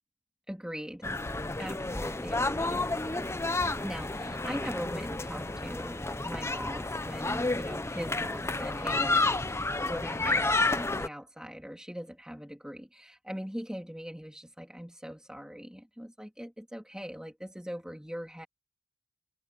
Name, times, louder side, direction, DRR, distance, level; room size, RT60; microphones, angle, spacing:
voice 1, 0.5-1.2 1.6-2.9 3.8-18.5, equal, 5° right, 3.0 m, -41 dB
sound 1, 1.0-11.1, left 2 dB, 10° left, 0.7 m, -30 dB
head